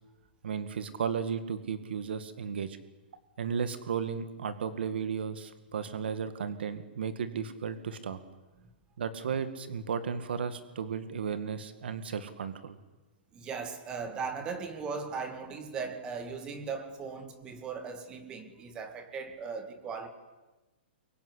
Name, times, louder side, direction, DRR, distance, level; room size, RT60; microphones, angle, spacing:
voice 1, 0.4-2.8 3.4-8.2 9.0-12.8, right 6 dB, 70° right, 11 dB, 2.1 m, -34 dB
voice 2, 13.3-20.1, right 5 dB, 15° right, 8 dB, 2.3 m, -38 dB
25.0 x 22.5 x 10.0 m, 1.1 s
hypercardioid pair, 170°, 6 cm